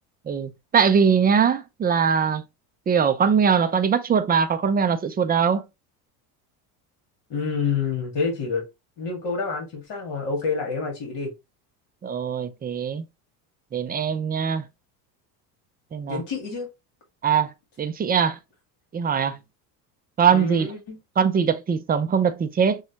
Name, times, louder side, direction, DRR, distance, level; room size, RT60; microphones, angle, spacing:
voice 1, 0.3-2.4 2.9-5.6 12.0-13.1 13.7-14.6 15.9-16.2 17.2-17.5 17.8-18.4 18.9-19.4 20.2-20.7 21.2-22.8, right 6 dB, 20° right, 0.5 m, -21 dB
voice 2, 7.3-8.6 9.0-11.3 16.1-16.7 20.3-21.0, left 5 dB, 55° left, 1.9 m, -28 dB
5.9 x 2.4 x 2.9 m
supercardioid pair, 90°, 49 cm